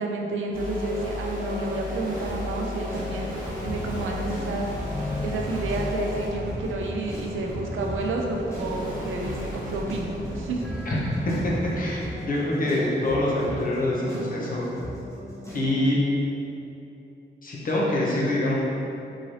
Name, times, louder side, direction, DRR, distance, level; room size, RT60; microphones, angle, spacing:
voice 1, 0.0-3.3 3.6-4.7 5.2-10.6, right 2 dB, 85° right, 0 dB, 0.5 m, -30 dB
sound 1, 0.5-11.8, left 1 dB, 45° right, 0.9 m, -34 dB
sound 2, 2.9-15.7, left 1 dB, 15° left, 0.8 m, -37 dB
voice 2, 11.2-14.7 15.5-16.0 17.4-18.5, left 1 dB, 45° left, -5 dB, 0.8 m, -25 dB
3.8 x 2.6 x 3.1 m, 2.9 s
wide cardioid pair, 120°, 20 cm